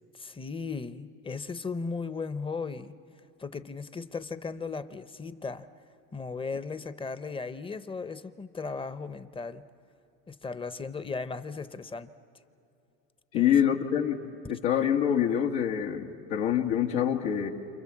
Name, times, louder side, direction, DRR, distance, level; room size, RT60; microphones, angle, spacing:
voice 1, 0.1-2.9 3.4-5.7 6.1-9.6 10.3-12.1 13.3-13.7, left 4 dB, 15° left, 13 dB, 0.7 m, -36 dB
voice 2, 13.3-14.2 14.5-17.5, left 9 dB, 80° left, 1 dB, 1.6 m, -26 dB
28.0 x 27.5 x 7.4 m, 2.8 s
supercardioid pair, 110°, 36 cm